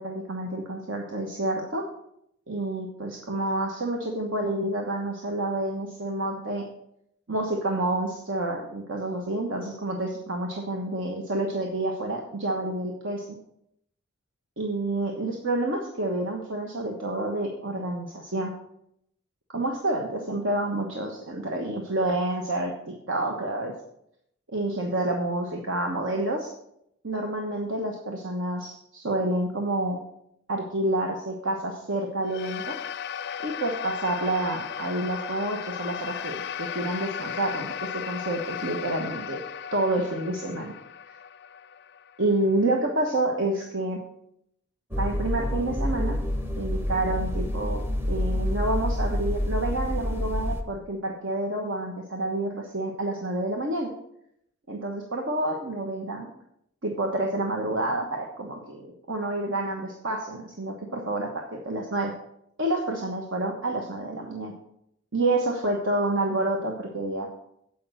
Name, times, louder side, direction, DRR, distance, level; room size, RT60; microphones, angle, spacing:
voice 1, 0.0-1.8 2.5-6.6 7.3-13.4 14.6-18.5 19.5-23.7 24.5-26.5 27.0-30.0 30.5-32.8 33.4-37.7 37.9-39.4 39.7-40.7 42.2-44.0 45.0-46.2 46.6-47.8 48.1-53.9 54.7-56.3 56.8-61.3 61.6-62.1 62.6-64.5 65.1-67.3, right 2 dB, 70° right, 1 dB, 1.3 m, -28 dB
sound 1, 32.2-42.8, left 8 dB, 50° left, 0.4 m, -36 dB
sound 2, 44.9-50.6, left 1 dB, 10° right, 0.8 m, -28 dB
8.6 x 5.5 x 7.9 m, 0.76 s
head